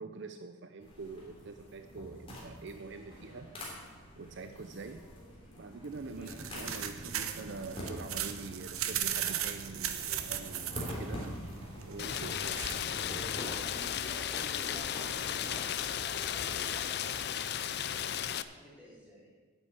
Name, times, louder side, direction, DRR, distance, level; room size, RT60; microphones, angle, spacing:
voice 1, 0.0-3.5 4.2-5.1 5.6-11.3 11.8-12.6, right 3 dB, 55° right, 8 dB, 0.6 m, -45 dB
sound 1, 0.8-17.1, equal, 25° left, 3.2 m, -46 dB
sound 2, 5.9-13.8, right 9 dB, 90° right, 0.9 m, -38 dB
voice 2, 6.1-6.4 13.3-17.4 17.8-19.2, equal, 5° right, -7 dB, 4.2 m, -52 dB
Rain, 12.0-18.4, left 9 dB, 50° left, 0.5 m, -35 dB
9.0 x 8.7 x 8.3 m, 1.4 s
head